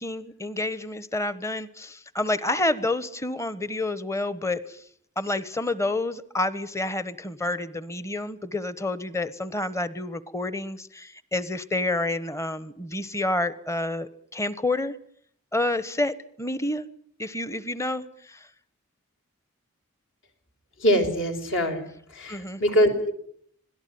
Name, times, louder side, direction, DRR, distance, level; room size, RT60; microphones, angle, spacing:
voice 1, 0.0-4.8 5.2-14.9 15.5-16.9 17.2-18.5 22.3-22.6, left 2 dB, 15° left, 16 dB, 1.1 m, -29 dB
voice 2, 20.8-21.8 22.2-23.1, equal, 60° left, 6 dB, 4.7 m, -23 dB
26.0 x 18.0 x 9.4 m, 0.64 s
head